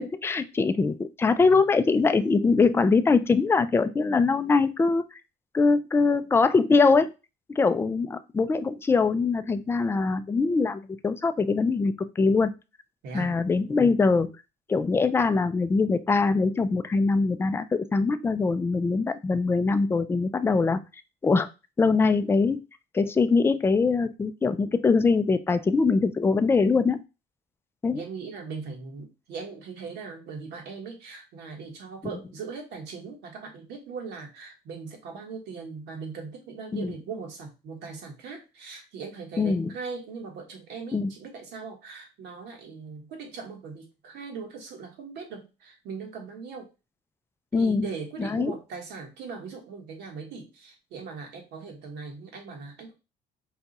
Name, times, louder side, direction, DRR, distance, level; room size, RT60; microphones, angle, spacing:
voice 1, 0.0-5.0 5.5-7.1 7.6-12.5 13.1-14.3 14.7-20.8 21.2-21.5 21.8-22.6 22.9-27.0 27.8-28.0 36.7-36.9 39.4-39.7 40.9-41.1 47.5-47.9 48.2-48.5, left 4 dB, 15° left, 11 dB, 0.3 m, -23 dB
voice 2, 13.0-13.4 27.9-46.7 47.5-52.9, right 5 dB, 80° right, 2 dB, 1.5 m, -39 dB
4.8 x 2.4 x 4.0 m, 0.28 s
cardioid pair, 110°, 17 cm